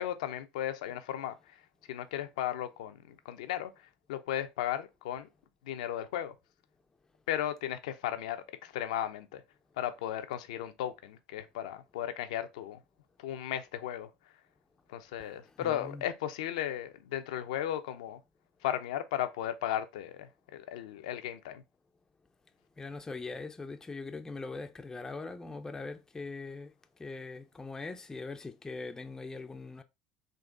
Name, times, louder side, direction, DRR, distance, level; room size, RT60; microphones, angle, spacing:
voice 1, 0.0-1.6 1.9-5.3 5.6-6.3 7.3-9.4 9.8-12.8 13.2-14.1 14.9-18.2 18.6-21.6, left 11 dB, 80° left, 0.5 m, -35 dB
voice 2, 15.2-16.0 22.8-26.7 27.0-29.8, left 3 dB, 15° left, 0.5 m, -41 dB
4.0 x 2.5 x 3.5 m
hypercardioid pair, 90°, 4 cm